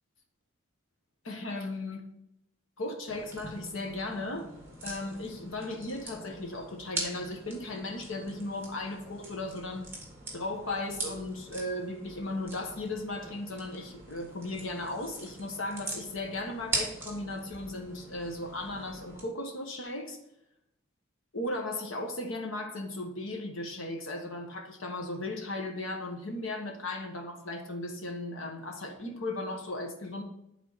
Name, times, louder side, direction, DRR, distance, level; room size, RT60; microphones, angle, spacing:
voice 1, 1.2-2.0 2.8-4.5 4.8-9.9 10.3-20.2 21.3-30.2, left 2 dB, 75° left, 3 dB, 1.3 m, -36 dB
sound 1, 3.1-19.2, right 2 dB, 10° right, 1.7 m, -42 dB
10.5 x 4.0 x 4.1 m, 0.83 s
head